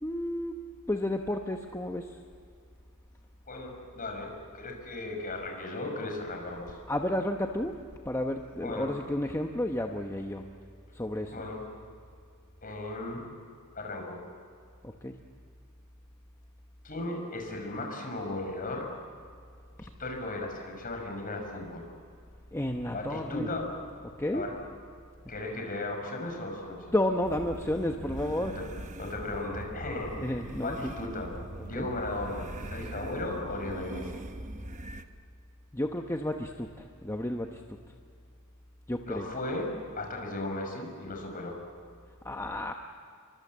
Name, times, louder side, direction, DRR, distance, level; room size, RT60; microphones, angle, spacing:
voice 1, 0.0-0.6 0.9-2.2 6.9-7.8 8.0-10.5 10.9-11.3 14.8-15.2 22.5-23.5 24.2-24.5 26.9-28.6 30.2-30.9 31.8-31.9 35.7-37.6 38.9-39.3 42.2-42.7, left 1 dB, 15° left, 3 dB, 1.0 m, -31 dB
voice 2, 3.5-6.8 8.6-8.9 11.3-11.6 12.6-13.3 13.7-14.2 16.8-18.9 19.8-21.9 22.9-23.7 24.3-24.5 25.3-27.0 28.5-28.6 29.0-31.3 31.6-34.1 39.1-41.6, left 2 dB, 40° left, 2 dB, 5.7 m, -36 dB
sound 1, 27.2-35.0, right 1 dB, 35° right, 1.1 m, -42 dB
28.5 x 24.0 x 7.5 m, 2.3 s
head